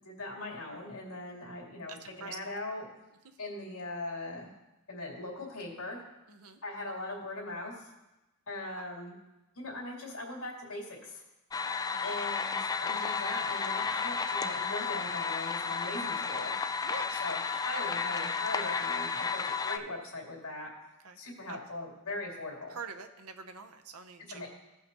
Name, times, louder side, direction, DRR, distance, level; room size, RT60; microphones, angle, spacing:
voice 1, 0.0-2.9 3.4-4.5 4.9-6.0 6.6-7.9 8.5-9.1 9.6-11.2 12.0-16.6 17.1-20.7 21.1-22.8 24.3-24.5, left 2 dB, 75° left, -2 dB, 2.5 m, -40 dB
voice 2, 1.9-2.4 3.2-3.4 6.3-6.6 8.7-8.8 11.9-12.1 16.8-17.2 21.0-21.2 21.5-21.6 22.7-24.5, right 5 dB, 85° right, 7 dB, 0.8 m, -45 dB
sound 1, 11.5-19.8, left 5 dB, 15° left, 0.3 m, -32 dB
15.5 x 5.6 x 3.0 m, 0.99 s
head